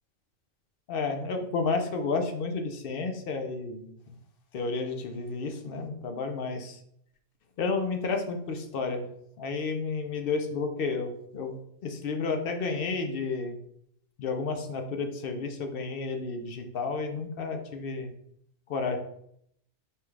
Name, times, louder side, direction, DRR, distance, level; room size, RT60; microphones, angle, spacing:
voice 1, 0.9-4.1 4.5-6.8 7.6-9.1 9.4-11.5 11.8-13.6 14.2-18.1 18.7-19.0, left 4 dB, 60° left, 5 dB, 0.6 m, -31 dB
5.6 x 2.3 x 3.2 m, 0.71 s
omnidirectional pair, 1.4 m